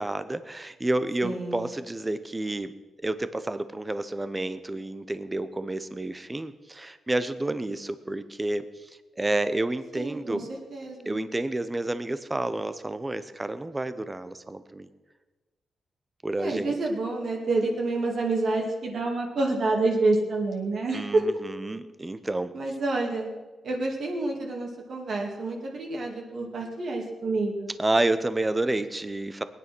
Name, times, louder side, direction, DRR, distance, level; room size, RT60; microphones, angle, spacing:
voice 1, 0.0-2.7 3.0-8.9 9.2-10.5 11.1-14.9 16.2-16.7 20.9-22.5 27.8-29.4, right 2 dB, 15° right, 12 dB, 0.8 m, -30 dB
voice 2, 1.2-1.7 9.9-10.4 10.7-11.2 16.4-21.2 22.5-23.3 23.6-27.7, right 2 dB, 50° right, -1 dB, 2.3 m, -28 dB
20.5 x 9.7 x 6.1 m, 1.3 s
wide cardioid pair, 160°, 0 cm